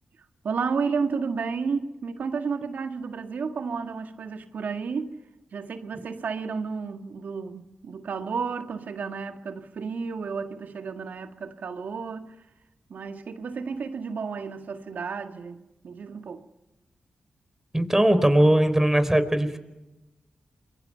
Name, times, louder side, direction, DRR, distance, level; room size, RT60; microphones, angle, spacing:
voice 1, 0.4-5.2 5.5-12.4 12.9-16.5, right 5 dB, 75° right, 1.8 m, -32 dB
voice 2, 17.7-19.6, right 1 dB, 15° right, 4.0 m, -20 dB
29.5 x 22.5 x 5.7 m
supercardioid pair, 40°, 3 cm